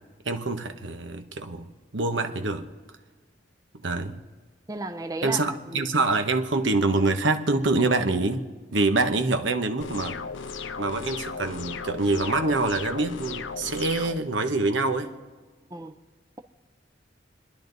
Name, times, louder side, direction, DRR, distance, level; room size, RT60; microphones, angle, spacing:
voice 1, 0.2-1.7 1.9-2.7 3.8-4.2 5.2-8.4 8.7-10.2 10.8-15.1, right 3 dB, 80° right, 1.2 m, -25 dB
voice 2, 4.7-5.9 15.7-15.9, right 2 dB, 20° right, 0.6 m, -34 dB
sound 1, 9.8-14.2, left 5 dB, 80° left, 0.7 m, -36 dB
29.0 x 11.0 x 4.1 m
head